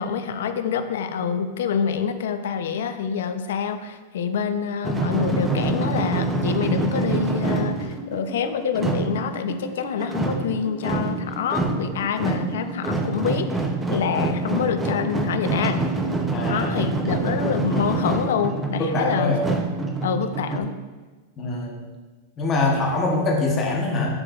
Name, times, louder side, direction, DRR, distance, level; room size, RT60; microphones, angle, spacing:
voice 1, 0.0-13.6 13.9-15.8 16.5-19.4 20.0-20.8, left 7 dB, 75° left, 9 dB, 0.5 m, -26 dB
sound 1, 4.8-20.6, right 3 dB, 10° right, 0.5 m, -26 dB
voice 2, 16.3-16.8 18.8-19.5 21.4-21.9 22.4-24.1, left 2 dB, 20° left, 0 dB, 0.8 m, -23 dB
6.9 x 6.7 x 2.3 m, 1.3 s
supercardioid pair, 165°, 0 cm